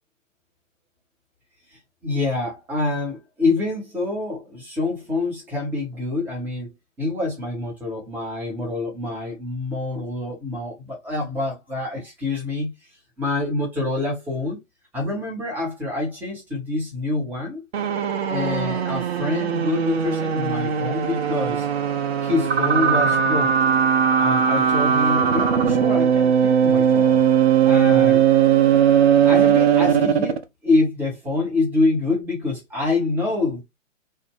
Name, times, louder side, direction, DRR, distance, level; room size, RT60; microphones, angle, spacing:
voice 1, 1.7-6.7 7.0-12.7 13.2-14.6 14.9-17.6 18.3-21.7 22.2-23.7 24.2-27.2 27.6-28.2 29.2-33.6, left 2 dB, 5° right, 0.7 m, -26 dB
sound 1, 17.7-30.4, right 8 dB, 55° right, 0.6 m, -19 dB
3.1 x 2.1 x 3.4 m
figure-of-eight pair, 125°, 39 cm